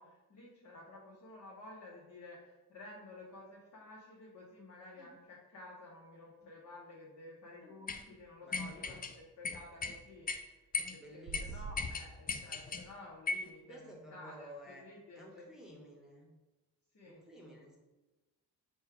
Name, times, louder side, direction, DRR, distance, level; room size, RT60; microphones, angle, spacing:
voice 1, 0.0-10.3 10.9-15.5 16.9-17.2, left 2 dB, 45° left, -4 dB, 1.0 m, -53 dB
sound 1, 7.9-8.0 8.5-9.1 9.4-10.0 10.3-10.4 10.7-11.0 11.3-11.4 11.8-12.8 13.3-13.5, left 4 dB, 25° left, 0.4 m, -37 dB
voice 2, 8.4-9.0 11.0-12.0 13.7-14.9 15.2-16.3 17.0-17.8, equal, ahead, -3 dB, 1.1 m, -54 dB
sound 2, 11.2-11.8, right 4 dB, 55° right, 0.5 m, -43 dB
4.3 x 2.3 x 4.6 m, 1.1 s
supercardioid pair, 60°, 39 cm